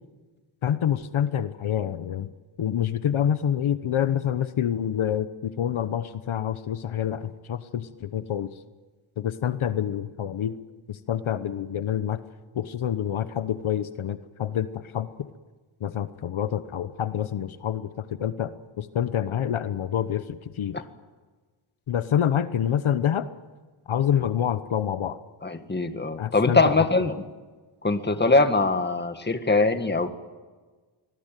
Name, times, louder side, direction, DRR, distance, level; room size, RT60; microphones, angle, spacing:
voice 1, 0.6-2.3 2.6-8.6 9.2-10.6 10.9-12.2 12.5-15.3 15.8-20.8 21.9-23.3 23.9-25.2 26.2-26.9, left 9 dB, 70° left, 12 dB, 1.1 m, -27 dB
voice 2, 25.4-27.2 27.8-30.1, left 3 dB, 20° left, 8 dB, 1.9 m, -22 dB
25.5 x 20.5 x 9.2 m, 1.3 s
wide cardioid pair, 125°, 50 cm